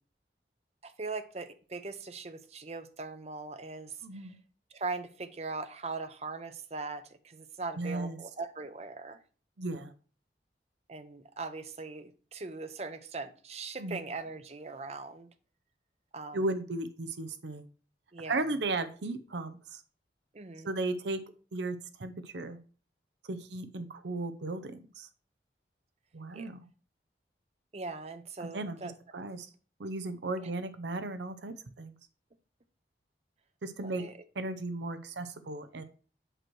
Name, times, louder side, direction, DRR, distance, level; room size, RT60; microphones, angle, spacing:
voice 1, 0.8-4.3 4.7-9.2 10.9-15.3 16.1-16.4 18.1-18.4 20.3-20.7 26.3-26.5 27.7-28.9 30.4-30.5 33.8-34.2, right 3 dB, 35° right, 0.6 m, -40 dB
voice 2, 4.0-4.4 7.8-8.2 9.6-9.9 13.8-14.0 16.3-17.7 18.3-19.8 20.6-21.2 21.5-22.6 23.2-25.1 26.1-26.7 28.4-29.5 29.8-32.0 33.6-34.0 34.4-35.8, right 2 dB, 80° right, 0.6 m, -35 dB
7.8 x 3.1 x 6.2 m
head